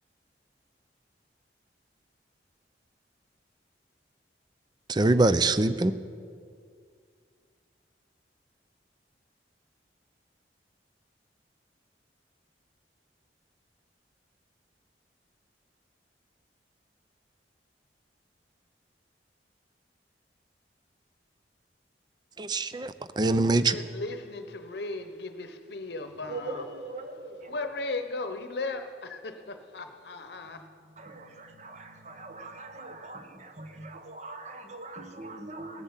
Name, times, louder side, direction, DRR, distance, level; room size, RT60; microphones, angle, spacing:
voice 1, 4.9-6.0 22.4-23.8, right 2 dB, 25° right, 13 dB, 0.5 m, -24 dB
voice 2, 23.7-26.6 27.5-30.7, left 2 dB, 70° left, 8 dB, 0.9 m, -36 dB
voice 3, 26.3-27.6 29.4-29.5 29.8-29.9 30.5-35.8, right 2 dB, 40° right, 6 dB, 1.2 m, -42 dB
18.0 x 7.7 x 7.3 m, 2.2 s
head